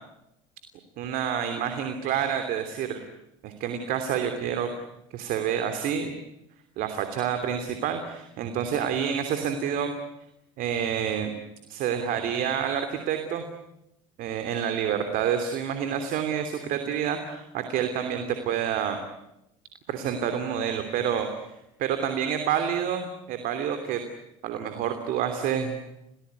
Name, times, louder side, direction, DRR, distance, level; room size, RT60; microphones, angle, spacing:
voice 1, 1.0-3.0 3.4-4.7 5.1-6.1 6.8-9.9 10.6-11.3 11.7-13.5 14.2-19.0 19.9-21.5 21.8-24.0 24.4-25.8, right 8 dB, 60° right, 7 dB, 3.1 m, -28 dB
29.0 x 19.0 x 9.6 m, 0.86 s
hypercardioid pair, 85°, 16 cm